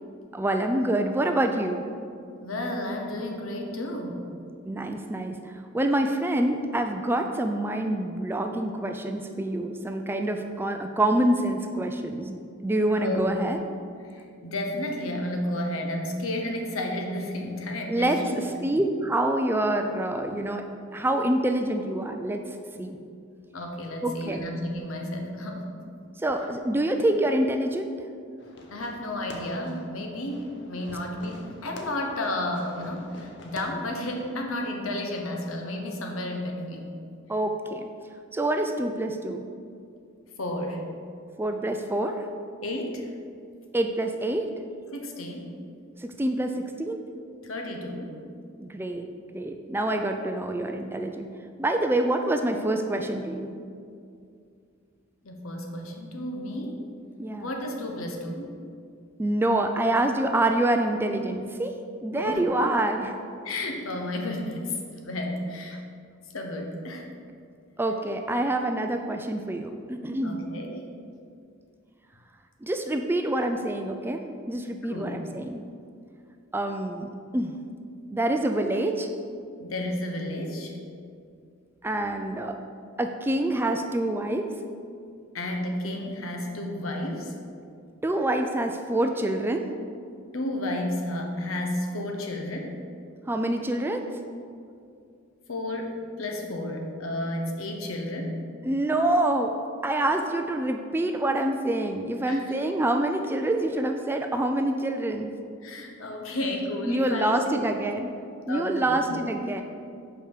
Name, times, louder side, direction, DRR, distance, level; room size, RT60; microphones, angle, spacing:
voice 1, 0.3-1.8 4.7-13.6 17.9-20.6 20.9-22.4 22.8-23.0 24.0-24.5 26.2-27.9 37.3-37.9 38.3-39.4 41.4-42.3 43.7-44.5 46.0-47.0 48.6-51.3 51.6-53.6 57.2-57.5 59.2-61.7 62.0-63.2 67.8-70.4 72.6-74.2 74.5-75.6 76.5-77.5 78.1-79.1 81.8-82.6 83.0-84.5 88.0-89.6 93.3-94.0 98.6-99.5 99.8-105.3 106.9-108.1 108.5-109.6, right 1 dB, 10° right, 5 dB, 0.3 m, -26 dB
voice 2, 2.4-4.3 13.0-13.3 14.0-18.5 22.7-22.9 23.5-25.7 28.7-36.9 40.4-40.8 42.6-43.1 44.9-45.6 47.4-48.3 55.2-56.8 57.4-58.5 62.1-62.5 63.4-65.8 66.3-67.1 70.2-70.8 74.9-75.2 79.6-80.7 85.3-87.3 90.3-92.8 95.5-98.4 102.3-102.4 105.6-107.7 108.5-109.3, left 1 dB, 85° left, 2 dB, 1.0 m, -32 dB
Fireworks, 28.4-34.4, left 1 dB, 55° left, 0.8 m, -46 dB
5.5 x 4.9 x 6.5 m, 2.3 s
head